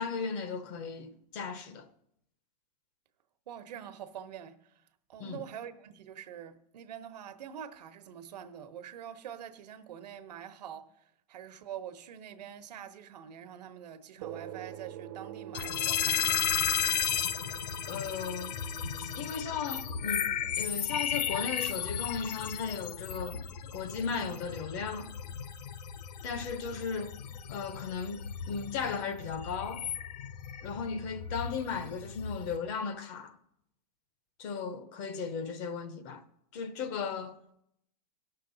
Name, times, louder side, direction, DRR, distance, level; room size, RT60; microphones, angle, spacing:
voice 1, 0.0-1.9 5.2-5.4 17.9-18.6 19.0-23.5 23.7-25.1 26.2-27.2 27.5-29.9 30.6-33.3 34.4-36.2 36.5-37.4, left 5 dB, 30° left, 0.7 m, -36 dB
voice 2, 3.5-4.8 5.1-16.4, right 9 dB, 80° right, 1.0 m, -45 dB
sound 1, 14.2-23.0, right 11 dB, 40° right, 0.6 m, -47 dB
sound 2, 15.5-32.6, left 8 dB, 80° left, 0.8 m, -34 dB
17.0 x 6.6 x 3.9 m
supercardioid pair, 175°, 21 cm